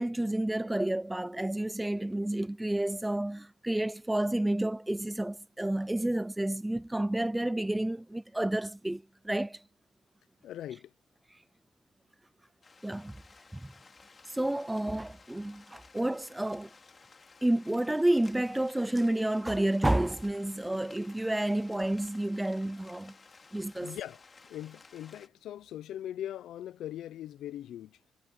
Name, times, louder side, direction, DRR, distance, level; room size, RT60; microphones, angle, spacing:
voice 1, 0.0-9.6 12.8-13.2 13.5-13.7 14.3-16.7 17.4-23.1 23.5-24.0, right 1 dB, 10° right, 0.5 m, -30 dB
voice 2, 10.4-10.9 23.8-24.2 24.5-28.0, left 12 dB, 75° left, 0.7 m, -40 dB
sound 1, 12.6-25.3, left 4 dB, 35° left, 3.1 m, -56 dB
cardioid pair, 90°, 0 cm